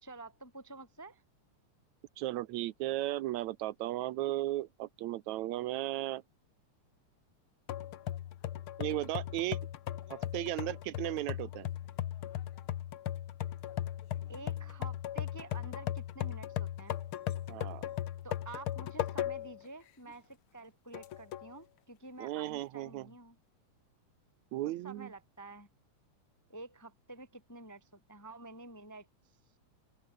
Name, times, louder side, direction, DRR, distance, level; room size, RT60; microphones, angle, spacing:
voice 1, 0.0-1.2 14.3-17.0 18.2-23.4 24.8-25.7 26.5-29.1, right 3 dB, 10° left, 1.1 m, -49 dB
voice 2, 2.2-6.2 8.8-9.6 10.1-11.7 17.5-17.9 22.2-23.1 24.5-25.1, right 15 dB, 75° right, 2.0 m, -35 dB
sound 1, 7.7-19.6 20.1-20.2 20.9-21.5, left 12 dB, 65° left, 1.4 m, -38 dB
open air
omnidirectional pair, 3.5 m